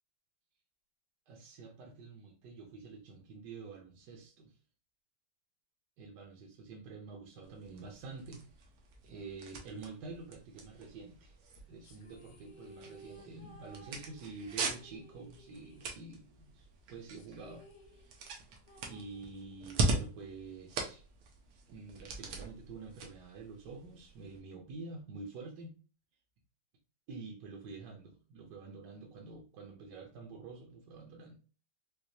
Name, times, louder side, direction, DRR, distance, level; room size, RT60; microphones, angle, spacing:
voice 1, 1.3-4.5 6.0-8.4 9.0-11.4 11.7-18.1 18.9-21.0 21.7-25.8 27.1-31.4, right 4 dB, 65° right, 1 dB, 1.1 m, -48 dB
sound 1, 7.4-24.4, right 3 dB, 90° right, 1.7 m, -41 dB
sound 2, 11.8-16.5 16.8-16.9 17.2-19.8, right 1 dB, 65° left, 1.2 m, -58 dB
4.5 x 2.3 x 2.7 m, 0.36 s
omnidirectional pair, 2.3 m